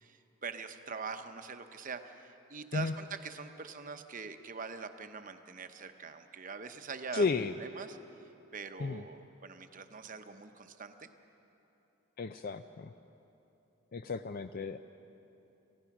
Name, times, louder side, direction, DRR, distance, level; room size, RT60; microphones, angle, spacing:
voice 1, 0.0-7.3 7.6-8.0 8.5-11.1, right 5 dB, 40° right, 8 dB, 0.9 m, -43 dB
voice 2, 7.1-7.5 8.8-9.0 12.2-12.9 13.9-14.8, left 4 dB, 45° left, 10 dB, 0.4 m, -33 dB
27.5 x 16.0 x 6.0 m, 3.0 s
head